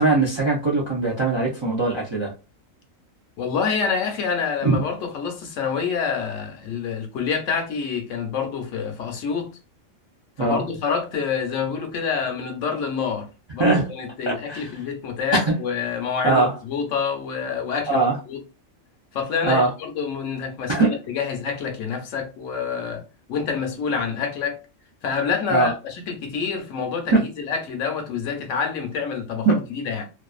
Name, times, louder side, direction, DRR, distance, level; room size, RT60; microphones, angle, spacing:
voice 1, 0.0-2.3 4.6-4.8 10.4-10.6 13.6-13.9 14.3-14.8 15.3-15.6 16.2-16.5 17.9-18.2 19.4-19.7 20.7-21.0 25.5-25.7 27.1-27.2 29.5-29.6, right 3 dB, 45° right, 0.3 m, -20 dB
voice 2, 3.4-9.5 10.4-13.3 13.5-18.4 19.1-23.0 23.3-24.6 25.0-30.1, left 6 dB, 75° left, 1.0 m, -27 dB
2.5 x 2.3 x 2.3 m
omnidirectional pair, 1.4 m